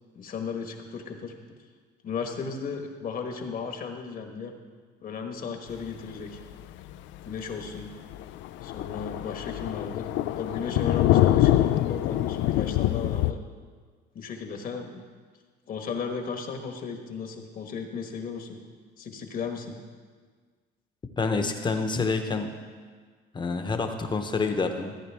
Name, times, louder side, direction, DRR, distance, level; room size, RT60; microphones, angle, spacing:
voice 1, 0.1-1.3 2.0-4.5 5.0-6.4 7.2-7.9 8.6-10.1 10.4-13.4 14.1-15.0 15.7-18.6 19.0-19.8, left 5 dB, 45° left, 4 dB, 1.3 m, -35 dB
Thunder, 6.4-6.5 6.9-7.0 7.4-7.5 7.8-7.9 8.1-13.3, left 13 dB, 75° left, 0.4 m, -24 dB
voice 2, 21.2-22.5 23.3-24.9, left 4 dB, 25° left, 6 dB, 0.9 m, -27 dB
14.0 x 9.0 x 3.5 m, 1.6 s
cardioid pair, 120°, 20 cm